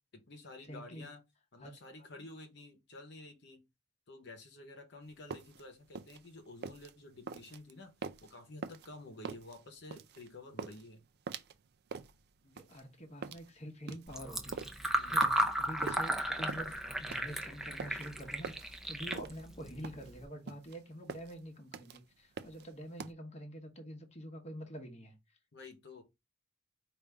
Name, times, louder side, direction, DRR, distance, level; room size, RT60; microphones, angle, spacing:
voice 1, 0.1-1.2 1.5-3.7 4.1-11.1 14.9-15.3 25.5-26.0, left 2 dB, 60° left, 0.9 m, -51 dB
voice 2, 0.6-1.0 1.6-1.7 2.0-2.3 12.4-25.2, equal, 35° left, 1.0 m, -47 dB
sound 1, 5.1-23.1, right 5 dB, 55° right, 0.4 m, -45 dB
Fill (with liquid), 14.1-20.3, right 1 dB, ahead, 0.6 m, -35 dB
5.0 x 2.6 x 3.4 m
head